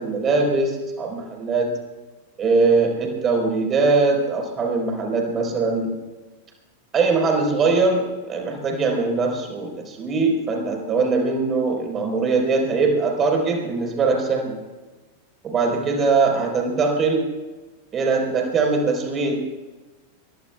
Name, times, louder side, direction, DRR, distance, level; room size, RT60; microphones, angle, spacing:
voice 1, 0.0-1.7 2.4-6.0 6.9-14.6 15.4-17.3 17.9-19.3, right 4 dB, 25° right, 2 dB, 4.3 m, -21 dB
23.5 x 22.0 x 2.4 m, 1.2 s
figure-of-eight pair, 90°, 0 cm